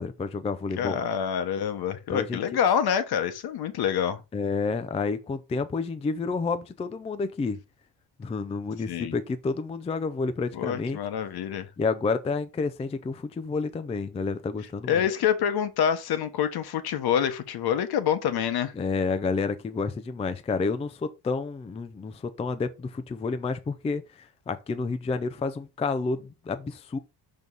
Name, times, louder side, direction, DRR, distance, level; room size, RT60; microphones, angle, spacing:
voice 1, 0.0-1.0 2.1-2.4 4.3-7.6 8.2-11.0 11.8-15.0 18.8-27.0, left 4 dB, 15° left, 0.4 m, -30 dB
voice 2, 0.8-4.2 8.9-9.1 10.5-11.7 14.9-18.7, left 8 dB, 65° left, 1.2 m, -26 dB
6.2 x 5.3 x 3.9 m
cardioid pair, 165°, 41 cm